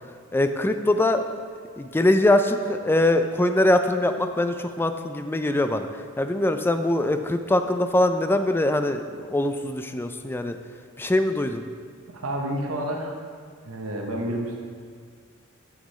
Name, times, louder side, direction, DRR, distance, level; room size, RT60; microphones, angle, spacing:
voice 1, 0.3-1.2 1.8-5.9 6.2-10.6 11.0-11.6, left 1 dB, 10° left, 8 dB, 0.3 m, -22 dB
voice 2, 12.1-13.2 13.7-14.6, right 1 dB, 85° right, 1 dB, 0.9 m, -29 dB
7.5 x 6.1 x 4.2 m, 2.1 s
head